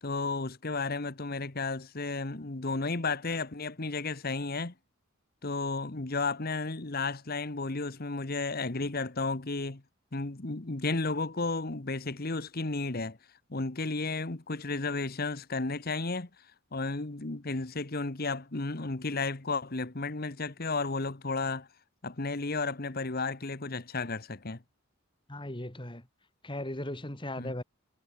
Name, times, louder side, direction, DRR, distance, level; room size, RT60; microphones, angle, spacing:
voice 1, 0.0-4.7 5.4-9.8 10.1-13.2 13.5-16.3 16.7-21.7 22.0-24.6 27.4-27.5, left 3 dB, 45° left, 1.3 m, -33 dB
voice 2, 25.3-26.1 26.4-27.6, left 1 dB, 25° left, 2.3 m, -37 dB
head